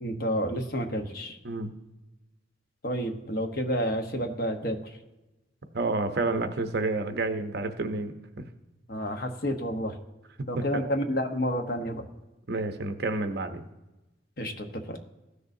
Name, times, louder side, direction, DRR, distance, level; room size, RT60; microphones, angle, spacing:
voice 1, 0.0-1.4 2.8-4.8 8.9-10.0 10.5-12.0 14.4-15.0, equal, 45° left, 4 dB, 1.0 m, -30 dB
voice 2, 5.7-8.1 10.6-10.9 12.5-13.6, right 3 dB, 55° right, 7 dB, 0.7 m, -29 dB
15.5 x 6.5 x 2.7 m, 1.0 s
head